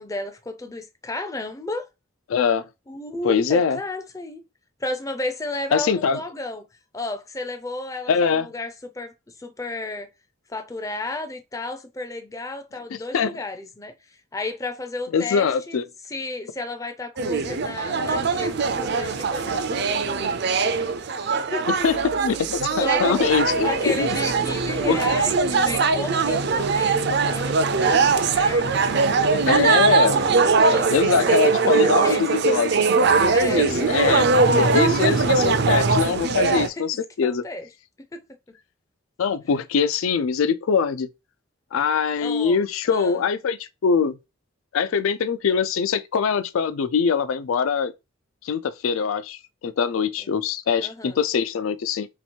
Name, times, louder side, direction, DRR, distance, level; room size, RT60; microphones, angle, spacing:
voice 1, 0.0-1.9 2.9-4.4 4.8-6.7 6.9-10.1 10.5-15.8 16.1-20.4 21.2-21.7 22.7-23.3 23.6-29.5 30.1-32.9 33.3-34.4 36.5-36.8 37.2-37.7 38.1-38.2 42.2-42.6 42.9-43.2 50.2-50.4 50.8-51.2, left 2 dB, 15° left, 0.4 m, -33 dB
voice 2, 2.3-2.7 3.2-3.8 5.7-6.2 8.1-8.5 13.1-13.4 15.1-15.9 21.8-24.1 24.9-25.0 29.5-30.2 30.9-32.8 33.5-34.3 34.5-37.4 39.2-41.1 41.7-44.2 44.7-47.9 48.4-52.1, left 6 dB, 80° left, 0.4 m, -23 dB
sound 1, 17.2-36.7, right 4 dB, 55° right, 0.4 m, -21 dB
3.1 x 2.9 x 4.3 m
head